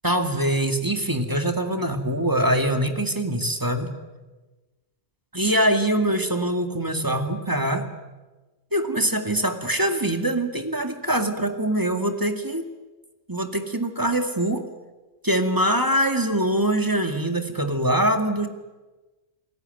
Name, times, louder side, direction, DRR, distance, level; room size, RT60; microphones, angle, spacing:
voice 1, 0.0-3.9 5.3-7.9 8.7-12.7 13.3-14.7 15.2-18.5, right 1 dB, 15° right, 6 dB, 2.2 m, -23 dB
29.5 x 19.5 x 9.2 m, 1.2 s
omnidirectional pair, 1.2 m